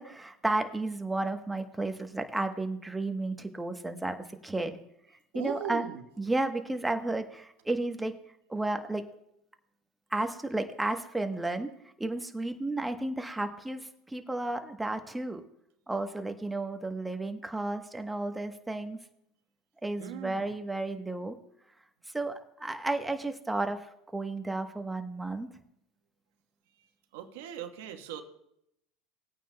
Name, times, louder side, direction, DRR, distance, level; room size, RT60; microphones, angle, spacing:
voice 1, 0.0-4.8 5.3-5.8 6.2-8.1 8.5-9.0 10.1-11.7 12.0-15.4 15.9-19.0 19.8-21.4 22.1-23.9 24.1-25.5, right 2 dB, 10° right, 6 dB, 1.0 m, -32 dB
voice 2, 5.3-6.0 20.0-20.5 27.1-28.2, right 8 dB, 80° right, 6 dB, 1.2 m, -39 dB
18.5 x 9.1 x 2.2 m, 0.77 s
supercardioid pair, 105°, 0 cm